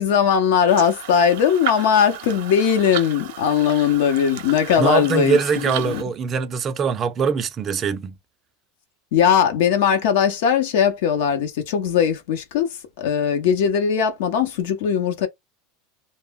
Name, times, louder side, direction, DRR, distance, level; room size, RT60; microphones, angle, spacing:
voice 1, 0.0-5.4 5.7-6.0 9.1-12.7 13.0-15.3, left 8 dB, 75° left, 0.7 m, -19 dB
sound 1, 0.7-6.0, right 10 dB, 70° right, 0.6 m, -34 dB
voice 2, 4.8-8.2, right 6 dB, 30° right, 0.4 m, -22 dB
2.1 x 2.0 x 3.3 m
supercardioid pair, 130°, 0 cm